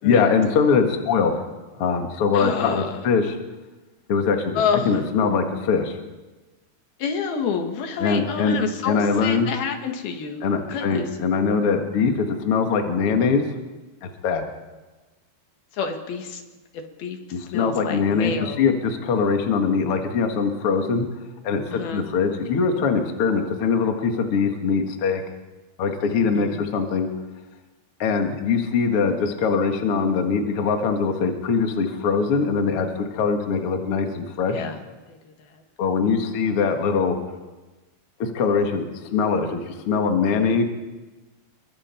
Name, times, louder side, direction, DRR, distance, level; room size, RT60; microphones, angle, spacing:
voice 1, 0.0-1.5 1.8-3.4 4.1-4.6 4.9-6.0 8.0-8.6 8.9-9.5 10.4-13.4 14.0-14.4 17.3-21.1 21.4-25.2 25.8-27.1 28.0-34.6 35.8-37.2 38.2-38.8 39.1-40.6, left 5 dB, 45° left, 4 dB, 2.2 m, -22 dB
voice 2, 2.3-3.0 4.6-5.0 7.0-11.1 15.7-16.4 16.7-17.2 17.5-18.7 21.7-22.1 26.3-26.6 34.5-34.8 35.1-35.6, left 6 dB, 80° left, 4 dB, 3.6 m, -28 dB
28.0 x 22.5 x 4.5 m, 1.2 s
omnidirectional pair, 4.3 m